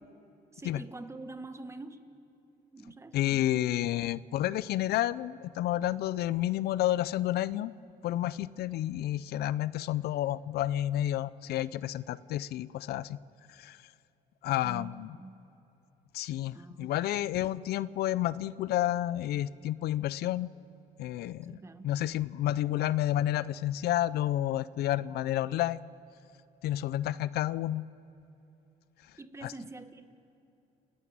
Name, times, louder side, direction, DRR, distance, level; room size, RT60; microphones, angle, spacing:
voice 1, 0.5-2.1 2.7-3.6 14.4-15.3 16.5-17.0 21.5-21.9 29.2-30.0, right 2 dB, 15° right, 9 dB, 1.4 m, -46 dB
voice 2, 3.1-7.7 8.0-13.2 13.5-13.8 14.4-15.2 16.1-20.5 21.0-21.6 21.8-25.9 26.6-27.8 29.4-29.5, left 13 dB, 70° left, 18 dB, 0.5 m, -30 dB
29.5 x 12.0 x 9.4 m, 2.9 s
cardioid pair, 110°, 17 cm